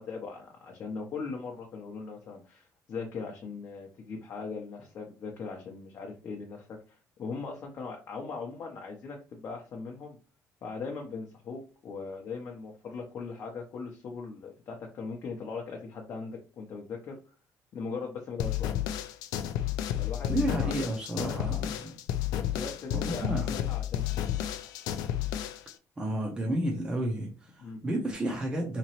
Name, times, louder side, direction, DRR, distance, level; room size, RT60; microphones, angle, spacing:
voice 1, 0.0-10.2 10.6-17.2 17.7-18.7 20.0-20.7 21.2-21.5 22.3-24.5 27.6-27.9, left 4 dB, 45° left, 0 dB, 0.7 m, -40 dB
sound 1, 18.4-25.7, left 11 dB, 90° left, 0.4 m, -31 dB
voice 2, 20.3-22.0 22.5-22.6 22.9-23.5 26.0-28.8, right 1 dB, 15° right, 0 dB, 0.6 m, -31 dB
3.8 x 3.0 x 2.9 m, 0.36 s
cardioid pair, 145°, 6 cm